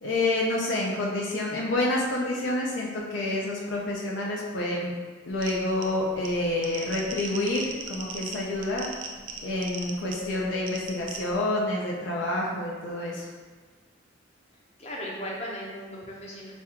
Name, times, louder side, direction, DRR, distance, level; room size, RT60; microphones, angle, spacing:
voice 1, 0.0-4.9 5.3-8.9 9.4-13.3, left 2 dB, 70° left, -3 dB, 0.5 m, -28 dB
sound 1, 5.3-11.4, right 5 dB, 80° right, 0.5 m, -40 dB
voice 2, 14.8-16.5, equal, 35° left, -3 dB, 0.7 m, -37 dB
5.2 x 2.3 x 2.9 m, 1.4 s
head